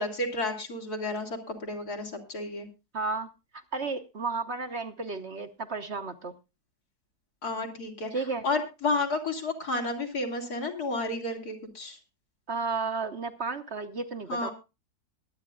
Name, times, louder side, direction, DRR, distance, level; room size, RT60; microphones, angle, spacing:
voice 1, 0.0-2.7 7.4-12.0 14.3-14.5, left 2 dB, 75° left, 1 dB, 3.1 m, -31 dB
voice 2, 2.9-6.3 8.1-8.4 12.5-14.5, right 4 dB, 45° right, 7 dB, 1.2 m, -33 dB
22.0 x 9.4 x 2.4 m, 0.27 s
omnidirectional pair, 1.7 m